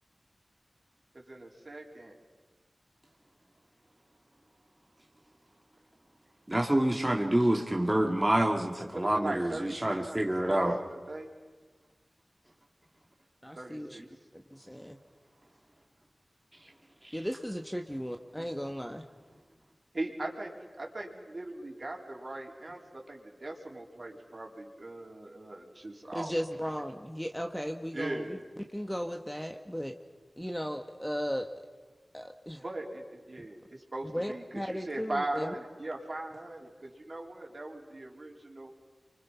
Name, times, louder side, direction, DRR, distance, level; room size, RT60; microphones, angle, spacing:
voice 1, 1.3-2.2 8.9-11.3 13.6-14.0 19.9-26.3 27.9-28.4 32.6-38.7, right 2 dB, 50° right, 0 dB, 4.1 m, -40 dB
voice 2, 6.5-10.8 17.0-17.1, right 1 dB, 20° right, 1 dB, 2.2 m, -27 dB
voice 3, 13.4-14.0 14.3-15.0 17.1-19.1 26.1-28.4 28.7-29.9 30.4-31.5 32.1-32.6 34.1-35.5, equal, 5° left, 4 dB, 1.3 m, -36 dB
30.0 x 25.0 x 5.8 m, 1.4 s
wide cardioid pair, 75°, 0 cm